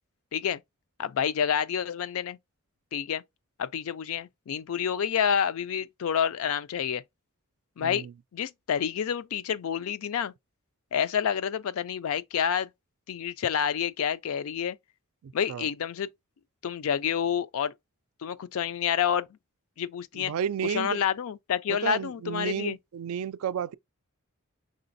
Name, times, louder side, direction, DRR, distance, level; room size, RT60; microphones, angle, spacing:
voice 1, 1.0-2.4 2.9-3.2 3.6-7.0 7.8-8.1 8.3-10.3 10.9-12.7 13.1-14.8 15.3-16.1 16.6-17.7 18.2-19.3 19.8-20.3 20.6-22.8, left 8 dB, 65° left, 0.4 m, -28 dB
voice 2, 7.8-8.1 15.2-15.6 20.1-21.0 21.7-23.7, right 8 dB, 65° right, 0.3 m, -32 dB
4.9 x 3.8 x 2.6 m
head